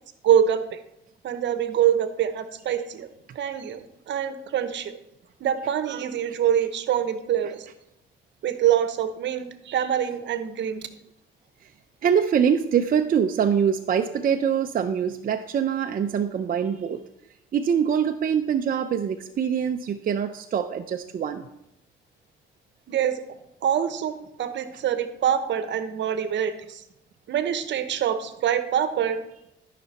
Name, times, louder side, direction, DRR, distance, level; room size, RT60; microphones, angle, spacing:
voice 1, 0.2-0.8 1.2-3.1 3.3-5.0 5.4-7.7 8.4-10.8 22.9-23.2 23.6-26.8 27.3-29.2, right 9 dB, 65° right, 10 dB, 0.9 m, -25 dB
voice 2, 12.0-17.0 17.5-21.5, right 7 dB, 45° right, 6 dB, 0.5 m, -24 dB
13.0 x 5.9 x 4.2 m, 0.83 s
cardioid pair, 90°, 20 cm